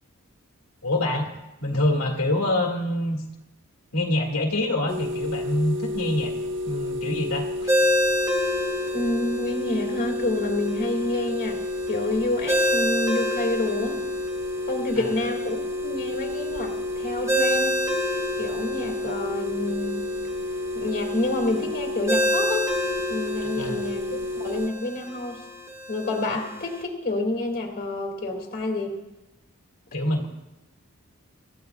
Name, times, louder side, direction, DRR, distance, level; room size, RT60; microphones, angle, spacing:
voice 1, 0.8-1.3 1.6-3.2 3.9-6.3 6.6-7.7 14.9-15.1 23.4-23.8 29.9-30.3, left 1 dB, 80° left, -1 dB, 2.2 m, -25 dB
sound 1, 4.9-24.7, left 1 dB, 60° right, 1.1 m, -31 dB
Ringtone, 7.7-26.8, left 1 dB, 15° right, 2.1 m, -29 dB
voice 2, 8.9-11.6 11.9-14.0 14.7-17.8 18.4-20.1 20.7-22.7 23.1-25.4 25.9-28.9, left 2 dB, 45° left, 1 dB, 2.4 m, -28 dB
27.0 x 14.5 x 2.4 m, 1.0 s
head